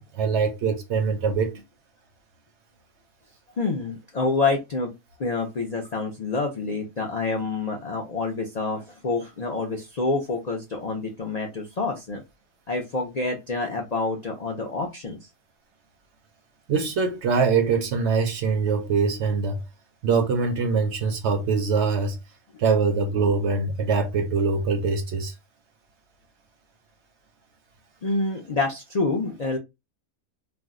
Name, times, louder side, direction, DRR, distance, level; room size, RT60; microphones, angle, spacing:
voice 1, 0.0-1.5 16.7-19.6 20.0-22.2 22.6-25.3, right 5 dB, 60° right, 0.8 m, -23 dB
voice 2, 3.6-4.9 5.2-12.2 12.7-15.3 28.0-29.6, left 3 dB, 70° left, 0.3 m, -27 dB
2.6 x 2.1 x 3.6 m
omnidirectional pair, 1.5 m